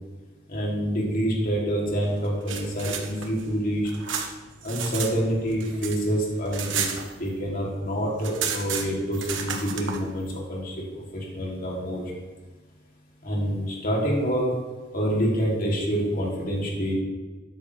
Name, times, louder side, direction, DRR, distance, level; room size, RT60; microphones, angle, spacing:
voice 1, 0.5-3.9 4.6-6.9 7.2-10.7 11.1-12.0 13.2-14.5 14.9-16.9, equal, 50° left, -3 dB, 3.2 m, -27 dB
sound 1, 2.2-5.1 5.4-7.6 7.9-8.0 8.2-10.0, right 7 dB, 70° right, 1.3 m, -32 dB
12.5 x 10.0 x 3.5 m, 1.3 s
head